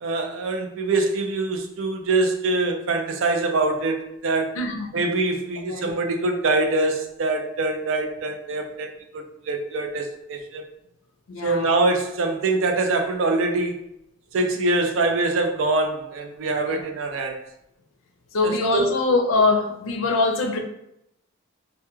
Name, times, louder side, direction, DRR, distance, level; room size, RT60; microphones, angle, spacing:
voice 1, 0.0-4.5 4.9-10.6 11.4-13.8 14.3-17.4 18.4-18.9, right 2 dB, 80° right, 4 dB, 0.4 m, -24 dB
voice 2, 4.6-5.0 5.7-5.9 11.3-11.7 16.7-16.8 18.3-20.6, left 3 dB, 80° left, 3 dB, 0.4 m, -23 dB
2.2 x 2.1 x 3.0 m, 0.81 s
head